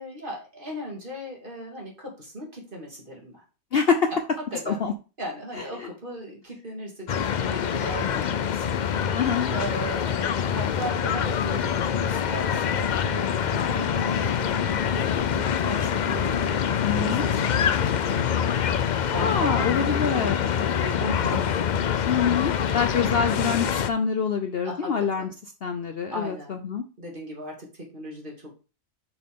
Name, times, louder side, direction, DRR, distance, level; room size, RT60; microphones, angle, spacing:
voice 1, 0.0-3.4 4.1-4.8 5.2-9.2 9.5-18.6 19.1-21.5 22.5-22.8 24.6-25.3 26.1-26.6 27.0-28.5, right 1 dB, 35° right, -2 dB, 2.9 m, -37 dB
voice 2, 3.7-4.1 4.7-4.9 9.1-9.5 16.8-17.2 19.2-20.4 22.1-25.3 25.6-26.8, left 6 dB, 55° left, 6 dB, 0.8 m, -25 dB
sound 1, 7.1-23.9, left 8 dB, 80° left, 0.4 m, -25 dB
6.9 x 6.3 x 3.6 m, 0.32 s
omnidirectional pair, 1.4 m